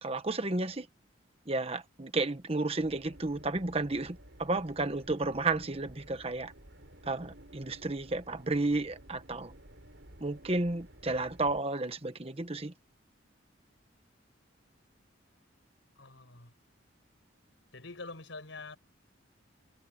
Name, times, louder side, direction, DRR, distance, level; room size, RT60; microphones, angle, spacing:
voice 1, 0.0-0.9 1.5-6.5 7.0-9.5 10.2-12.7, right 2 dB, 30° right, 1.2 m, -32 dB
sound 1, 2.8-11.6, right 1 dB, 65° right, 7.1 m, -54 dB
voice 2, 16.0-16.5 17.7-18.8, left 3 dB, 70° left, 5.6 m, -45 dB
head